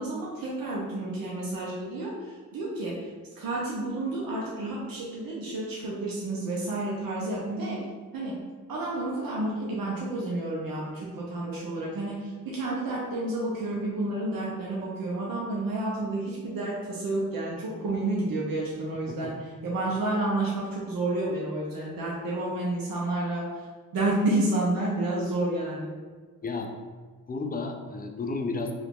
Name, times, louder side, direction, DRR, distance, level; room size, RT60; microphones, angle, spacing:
voice 1, 0.0-3.1 3.4-7.8 8.1-8.4 8.7-23.4 23.9-25.9, right 2 dB, 85° right, -4 dB, 0.6 m, -30 dB
voice 2, 27.3-28.7, left 3 dB, 30° left, 4 dB, 0.4 m, -32 dB
2.8 x 2.4 x 3.6 m, 1.4 s
cardioid pair, 65°, 33 cm